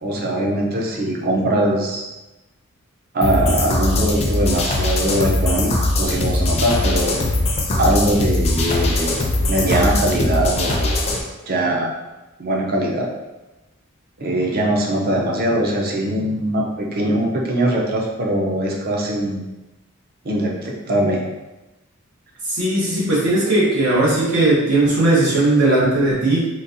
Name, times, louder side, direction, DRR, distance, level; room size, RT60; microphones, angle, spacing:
voice 1, 0.0-2.0 3.1-5.7 6.0-7.1 7.8-9.2 9.5-11.0 11.5-11.9 12.4-13.1 14.2-19.5 20.2-21.2, right 1 dB, 45° right, -1 dB, 0.5 m, -21 dB
sound 1, 3.2-11.2, left 2 dB, 30° left, 0.4 m, -20 dB
voice 2, 22.5-26.5, right 2 dB, 85° right, -7 dB, 1.2 m, -17 dB
3.9 x 2.3 x 2.6 m, 1.1 s
head